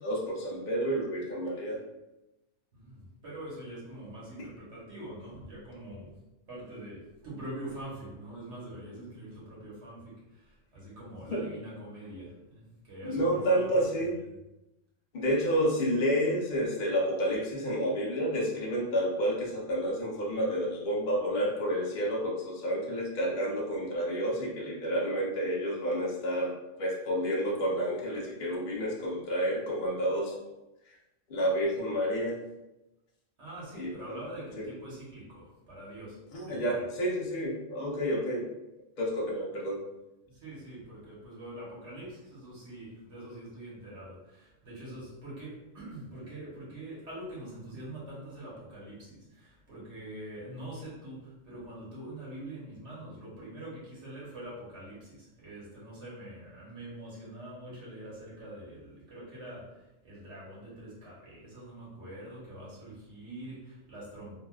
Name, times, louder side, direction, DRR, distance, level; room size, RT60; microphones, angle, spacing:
voice 1, 0.0-1.8 11.3-11.4 13.0-14.1 15.1-30.4 31.3-32.4 33.7-33.9 34.6-34.7 36.3-38.5 39.0-39.8, equal, 45° left, -3 dB, 0.7 m, -30 dB
voice 2, 2.7-6.1 6.5-13.6 14.0-14.3 33.4-36.9 40.2-64.4, right 1 dB, 65° right, -7 dB, 1.5 m, -44 dB
3.5 x 2.5 x 2.3 m, 0.96 s
omnidirectional pair, 1.3 m